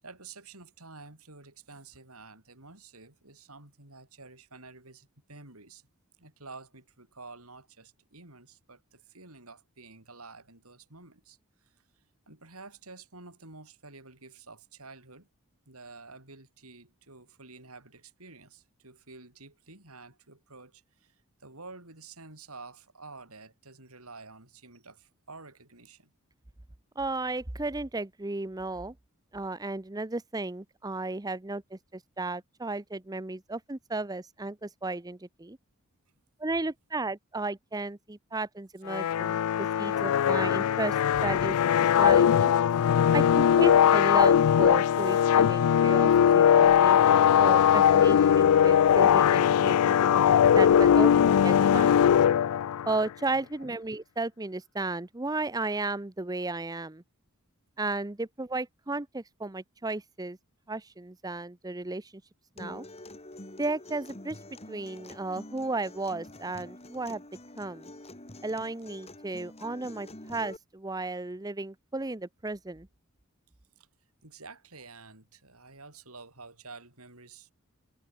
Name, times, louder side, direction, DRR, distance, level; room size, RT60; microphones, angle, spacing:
voice 1, 0.0-5.8 6.2-11.7 12.3-15.3 15.7-26.1 50.7-51.1 53.3-53.7 73.8-73.9 74.2-77.5, right 3 dB, 85° right, 8.0 m, -50 dB
voice 2, 27.0-28.9 29.3-35.6 36.4-41.7 42.0-42.5 43.1-52.0 52.9-57.0 57.8-60.4 60.7-62.1 62.6-62.9 63.6-64.4 64.7-67.2 67.6-67.9 68.4-72.9, right 2 dB, 15° right, 0.8 m, -34 dB
sound 1, 38.9-53.0, left 9 dB, 85° left, 0.4 m, -20 dB
Acoustic guitar, 62.6-70.6, left 1 dB, 30° left, 3.1 m, -46 dB
head